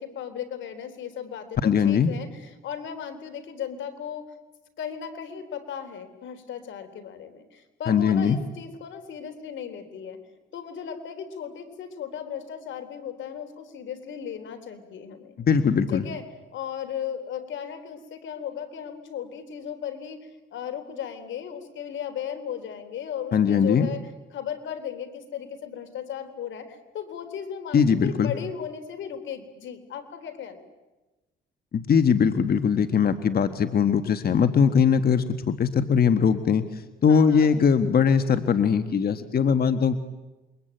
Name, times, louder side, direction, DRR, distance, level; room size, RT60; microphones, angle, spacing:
voice 1, 0.0-4.3 4.8-10.2 10.5-15.4 15.9-16.2 16.5-24.0 24.3-30.6 37.1-37.5, left 8 dB, 75° left, 9 dB, 3.8 m, -36 dB
voice 2, 1.6-2.1 7.9-8.4 15.5-16.0 23.3-23.9 27.7-28.3 31.7-36.7 37.0-39.9, left 6 dB, 50° left, 10 dB, 1.6 m, -21 dB
28.0 x 23.5 x 9.2 m, 1.1 s
cardioid pair, 90°, 20 cm